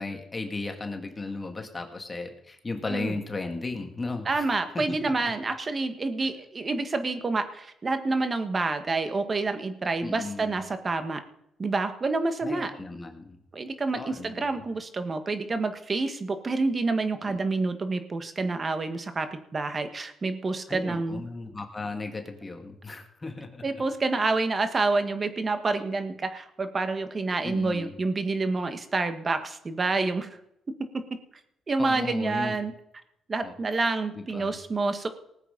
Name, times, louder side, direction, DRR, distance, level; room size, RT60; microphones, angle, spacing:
voice 1, 0.0-5.3 10.0-10.6 12.4-13.4 14.0-14.6 17.2-17.4 20.7-23.6 27.4-27.9 31.8-32.5 33.4-33.5 34.2-34.6, left 3 dB, 25° left, 4 dB, 2.1 m, -35 dB
voice 2, 4.2-11.2 11.6-12.7 13.5-21.2 23.6-30.4 31.7-32.7 33.3-35.1, right 3 dB, 35° right, 8 dB, 1.6 m, -28 dB
19.0 x 8.2 x 5.3 m, 0.79 s
cardioid pair, 90°, 0 cm